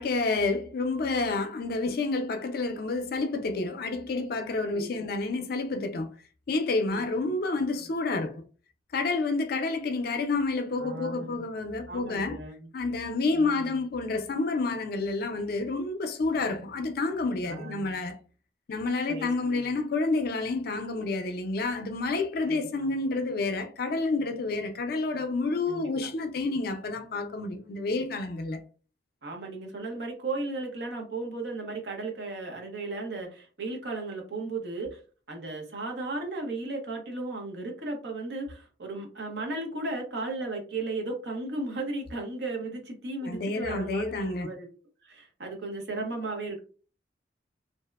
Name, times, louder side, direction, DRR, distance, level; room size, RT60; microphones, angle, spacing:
voice 1, 0.0-6.1 6.5-8.3 8.9-12.4 12.7-18.2 18.7-28.6 43.2-44.5, left 3 dB, 60° left, 0.4 m, -29 dB
voice 2, 4.7-5.1 6.9-7.0 10.8-11.4 11.9-12.7 13.3-13.8 17.4-17.9 19.1-19.8 22.5-22.9 25.7-25.8 29.2-35.0 35.3-44.7 45.0-46.6, right 2 dB, 70° right, 0.7 m, -35 dB
2.7 x 2.0 x 2.2 m
head